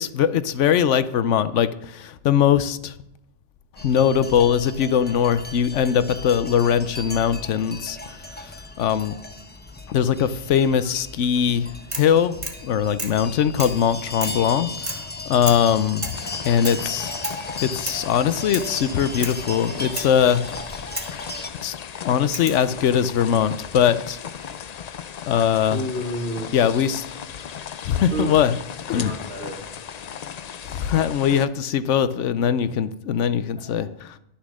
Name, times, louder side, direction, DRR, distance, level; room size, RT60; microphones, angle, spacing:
voice 1, 0.0-2.9 3.8-8.0 8.8-9.2 9.9-11.7 11.9-12.3 12.6-15.0 15.3-16.1 16.4-17.1 17.6-20.4 21.6-21.7 22.0-24.2 25.3-25.8 26.5-27.0 27.8-28.6 28.9-29.2 30.7-34.1, left 8 dB, 90° left, 14 dB, 1.0 m, -21 dB
sound 1, 3.8-21.5, left 2 dB, 10° left, 0.7 m, -36 dB
sound 2, 11.9-12.2 12.4-12.6 13.0-13.2 13.6-13.8 14.2-14.4 14.9-15.1 15.5-15.7 16.0-16.2 16.6-16.8 17.2-17.4 17.9-18.1 18.5-18.7 19.2-19.4 20.0-20.2 21.0-21.2 22.3-22.7 23.8-24.3, right 2 dB, 25° right, 1.7 m, -33 dB
sound 3, 16.1-31.5, left 8 dB, 55° left, 0.4 m, -37 dB
voice 2, 25.7-26.5 28.1-28.4 28.9-29.7 33.6-33.8, right 1 dB, 65° right, -1 dB, 2.9 m, -30 dB
11.5 x 7.2 x 6.2 m, 0.82 s
omnidirectional pair, 1.2 m